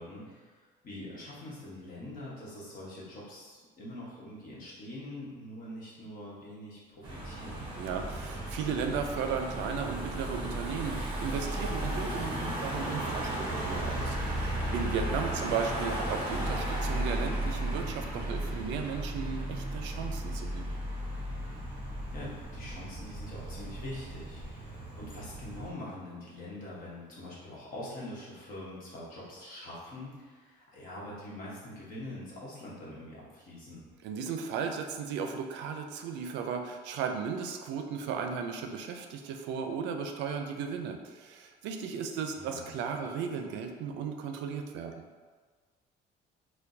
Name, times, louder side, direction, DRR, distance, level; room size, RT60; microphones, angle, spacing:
voice 1, 0.0-7.7 22.1-33.8 42.3-42.7, left 1 dB, 50° left, -6 dB, 1.1 m, -44 dB
Car passing by / Engine, 7.0-25.7, right 1 dB, 25° right, 0.7 m, -35 dB
voice 2, 7.8-20.6 34.0-44.9, right 6 dB, 80° right, 5 dB, 0.4 m, -35 dB
4.4 x 2.2 x 2.6 m, 1.5 s
cardioid pair, 160°, 18 cm